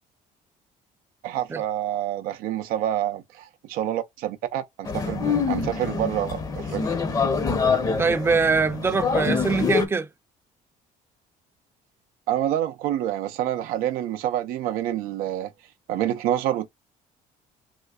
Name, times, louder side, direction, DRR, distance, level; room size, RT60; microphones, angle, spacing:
voice 1, 1.2-6.8 12.3-15.5 15.9-16.7, right 11 dB, 90° right, 0.5 m, -27 dB
sound 1, 4.9-9.9, left 5 dB, 25° left, 0.6 m, -25 dB
voice 2, 8.0-10.1, right 4 dB, 15° right, 0.4 m, -23 dB
3.6 x 3.0 x 2.2 m
cardioid pair, 150°, 15 cm